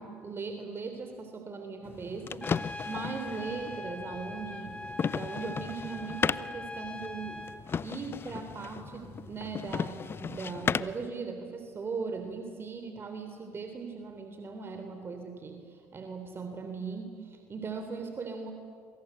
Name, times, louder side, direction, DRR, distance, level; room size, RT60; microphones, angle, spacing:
voice 1, 0.0-7.4 7.8-18.5, right 4 dB, 35° right, 6 dB, 3.4 m, -39 dB
sound 1, 1.8-11.1, left 6 dB, 35° left, 0.7 m, -36 dB
Trumpet, 2.4-7.6, left 2 dB, 15° left, 2.6 m, -42 dB
27.0 x 26.0 x 8.0 m, 2.2 s
hypercardioid pair, 65°, 7 cm